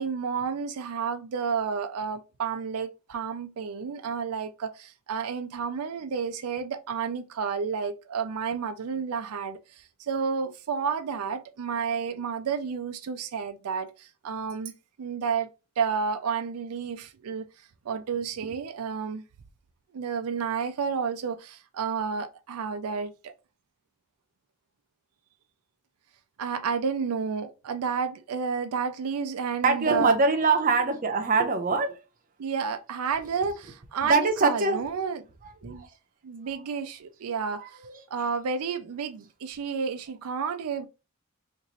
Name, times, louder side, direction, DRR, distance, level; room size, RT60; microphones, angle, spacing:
voice 1, 0.0-14.7 15.0-15.5 15.8-17.5 17.8-19.2 19.9-23.3 26.4-30.2 32.4-35.2 35.6-35.9 36.2-37.6 38.1-40.9, right 6 dB, 90° right, 0.4 m, -31 dB
voice 2, 29.6-32.0 34.0-34.8 35.6-35.9 37.6-38.2, right 4 dB, 40° right, 0.6 m, -24 dB
3.0 x 2.5 x 3.9 m
head